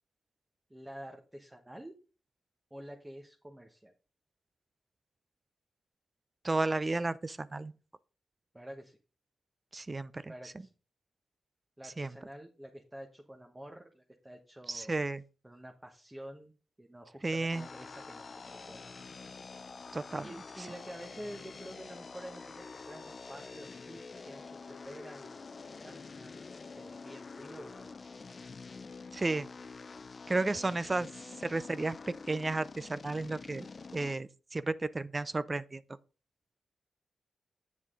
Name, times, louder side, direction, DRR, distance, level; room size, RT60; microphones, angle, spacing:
voice 1, 0.7-1.9 2.7-3.9 8.5-9.0 10.3-10.7 11.8-14.9 15.4-18.8 20.2-25.4 25.7-28.2, right 1 dB, 15° right, 1.2 m, -49 dB
voice 2, 6.4-7.7 9.7-10.3 12.0-12.1 14.7-15.2 17.2-17.7 19.9-20.3 29.1-29.5 30.3-31.1 31.4-33.7 33.9-35.8, right 2 dB, 30° right, 0.5 m, -33 dB
sound 1, 17.5-34.2, left 4 dB, 50° left, 0.6 m, -47 dB
8.3 x 7.2 x 3.8 m
cardioid pair, 55°, 0 cm